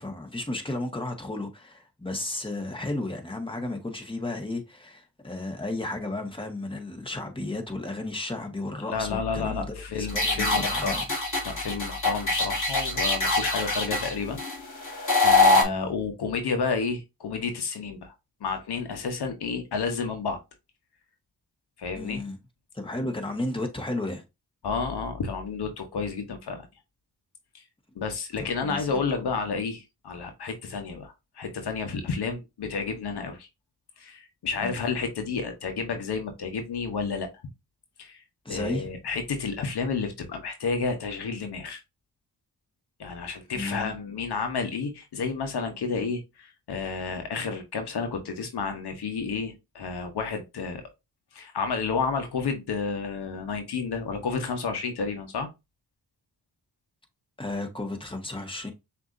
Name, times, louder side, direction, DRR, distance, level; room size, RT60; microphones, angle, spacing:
voice 1, 0.0-11.1 15.5-15.9 21.9-22.4 22.7-24.2 28.4-29.0 34.6-34.8 38.4-38.9 43.5-43.9 57.4-58.7, left 2 dB, 15° left, 1.4 m, -33 dB
voice 2, 8.9-11.0 11.4-14.4 14.7-18.1 18.4-20.4 21.8-22.2 24.6-26.7 27.5-27.6 28.0-33.5 34.0-37.3 38.0-38.2 38.5-41.8 43.0-50.8 51.3-55.5, left 5 dB, 75° left, 1.0 m, -31 dB
sound 1, 10.1-15.6, left 3 dB, 50° left, 1.7 m, -24 dB
6.0 x 2.8 x 2.6 m
cardioid pair, 45°, 40 cm